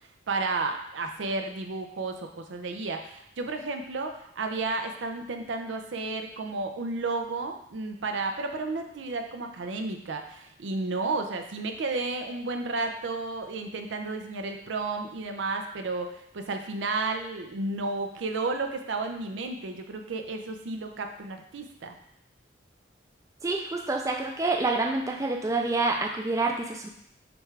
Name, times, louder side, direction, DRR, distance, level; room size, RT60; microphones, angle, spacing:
voice 1, 0.3-21.9, right 3 dB, 85° right, 5 dB, 0.5 m, -32 dB
voice 2, 23.4-26.9, right 3 dB, 15° right, 1 dB, 0.3 m, -27 dB
6.0 x 2.4 x 3.3 m, 0.72 s
head